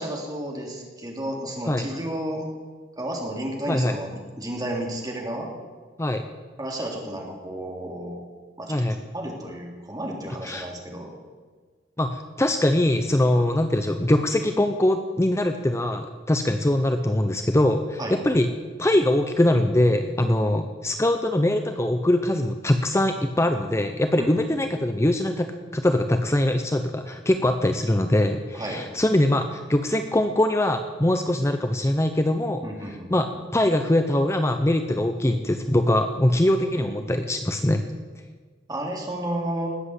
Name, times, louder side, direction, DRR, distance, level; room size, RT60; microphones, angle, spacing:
voice 1, 0.0-2.5 3.0-5.5 6.6-8.1 8.6-8.8 9.1-11.1 18.0-18.2 24.2-24.4 24.7-24.8 28.5-28.8 32.6-33.1 36.8-36.9 38.7-39.7, right 1 dB, 20° right, 0 dB, 3.2 m, -32 dB
voice 2, 12.0-18.5 18.8-32.6 33.1-33.3 33.5-37.8, left 1 dB, 15° left, 7 dB, 0.7 m, -22 dB
19.5 x 8.0 x 8.3 m, 1.5 s
head